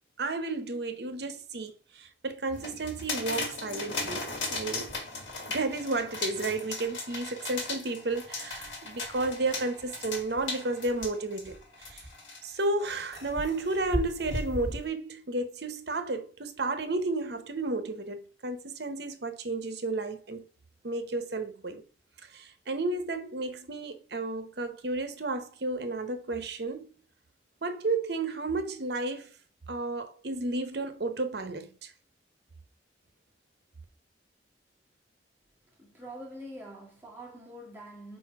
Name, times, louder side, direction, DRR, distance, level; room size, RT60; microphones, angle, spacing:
voice 1, 0.2-4.9 5.5-12.1 12.4-20.4 20.8-21.8 22.2-26.9 27.6-29.3 29.7-31.9, right 2 dB, 60° right, 0.9 m, -32 dB
sound 1, 2.5-12.5 13.1-14.9, left 2 dB, 90° left, 1.5 m, -36 dB
voice 2, 35.8-38.2, right 1 dB, 10° right, 2.1 m, -45 dB
4.9 x 4.3 x 4.7 m
head